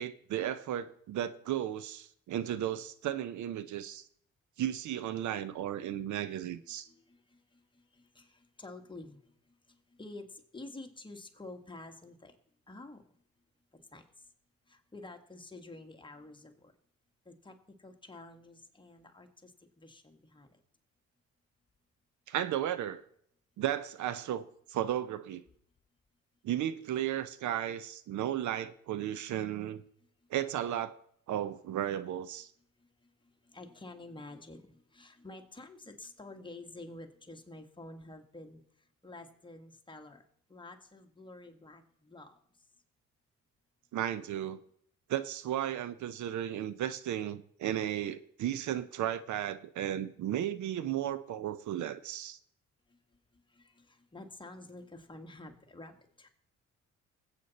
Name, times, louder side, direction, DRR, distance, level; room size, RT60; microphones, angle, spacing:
voice 1, 0.0-4.0 4.6-6.9 22.3-23.0 23.6-25.4 26.4-29.8 30.3-31.0 31.3-32.5 43.9-44.6 45.1-52.4, right 11 dB, 70° right, 0.7 m, -34 dB
voice 2, 8.1-9.2 10.0-12.3 12.7-13.0 13.9-14.0 14.7-16.7 17.2-19.5 19.8-20.5 33.5-38.6 39.0-40.2 40.5-42.3 53.5-56.3, left 2 dB, 15° left, 1.6 m, -49 dB
20.5 x 8.3 x 4.1 m
cardioid pair, 90°, 30 cm